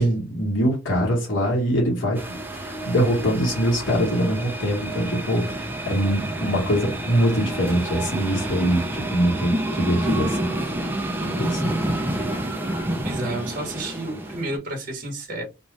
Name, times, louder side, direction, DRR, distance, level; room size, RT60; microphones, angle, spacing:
voice 1, 0.0-2.2 2.5-10.5 11.2-11.7, equal, 65° left, 1.2 m, -23 dB
sound 1, 2.2-14.6, right 1 dB, 10° right, 0.4 m, -29 dB
voice 2, 12.9-15.4, right 1 dB, 45° right, 0.9 m, -31 dB
2.6 x 2.3 x 3.1 m
head